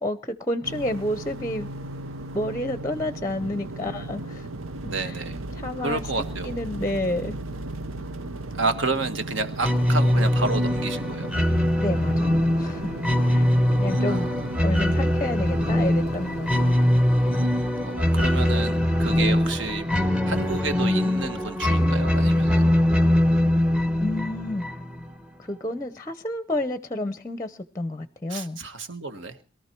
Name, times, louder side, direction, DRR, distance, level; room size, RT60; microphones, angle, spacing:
voice 1, 0.0-1.7 2.3-4.4 5.1-5.2 5.5-6.0 6.4-7.4 11.8-12.9 13.3-13.5 13.8-14.3 14.6-16.8 24.0-24.6 25.4-28.6, left 1 dB, 15° left, 12 dB, 0.7 m, -30 dB
sound 1, 0.6-17.9, right 2 dB, 80° right, 0.9 m, -36 dB
voice 2, 4.9-5.4 5.8-6.6 8.5-11.3 14.0-14.4 17.7-22.8 28.3-29.4, right 3 dB, 60° right, 9 dB, 1.5 m, -30 dB
sound 2, 9.6-25.1, left 1 dB, 5° right, 0.9 m, -22 dB
22.5 x 13.5 x 4.5 m, 0.39 s
head